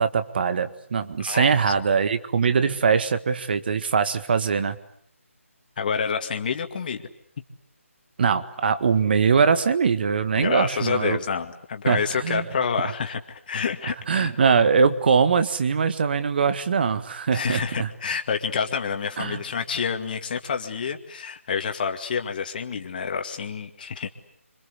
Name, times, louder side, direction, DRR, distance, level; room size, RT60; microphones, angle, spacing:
voice 1, 0.0-4.8 8.2-11.2 11.9-12.5 14.1-17.9 19.2-19.4, right 5 dB, 45° right, 11 dB, 1.8 m, -22 dB
voice 2, 1.2-1.5 5.8-7.0 10.4-14.3 14.6-14.7 17.3-24.1, left 6 dB, 35° left, 6 dB, 2.3 m, -28 dB
26.5 x 25.0 x 8.3 m, 0.69 s
figure-of-eight pair, 160°, 8 cm